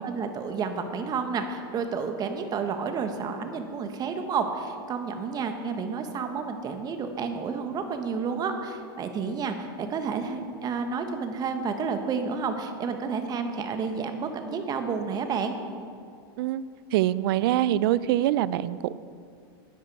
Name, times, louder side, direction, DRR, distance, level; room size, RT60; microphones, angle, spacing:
voice 1, 0.0-15.5, right 5 dB, 30° right, 7 dB, 1.2 m, -30 dB
voice 2, 16.9-19.0, right 13 dB, 65° right, 18 dB, 0.4 m, -24 dB
10.5 x 10.0 x 4.7 m, 2.4 s
hypercardioid pair, 120°, 13 cm